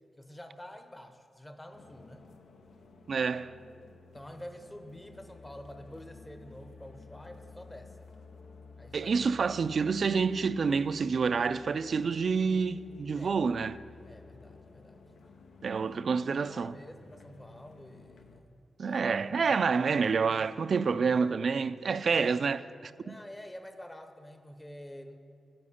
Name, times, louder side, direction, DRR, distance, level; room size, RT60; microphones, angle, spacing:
voice 1, 0.2-2.2 4.1-8.1 8.8-9.4 13.2-13.4 14.0-15.0 16.5-19.0 19.4-19.6 22.2-22.4 23.0-25.2, equal, 15° left, 0.8 m, -48 dB
sound 1, 1.7-18.4, left 4 dB, 85° left, 0.7 m, -53 dB
voice 2, 3.1-3.6 8.9-13.8 15.6-16.7 18.8-23.2, right 5 dB, 60° right, 0.3 m, -28 dB
9.7 x 9.3 x 5.7 m
cardioid pair, 90°, 0 cm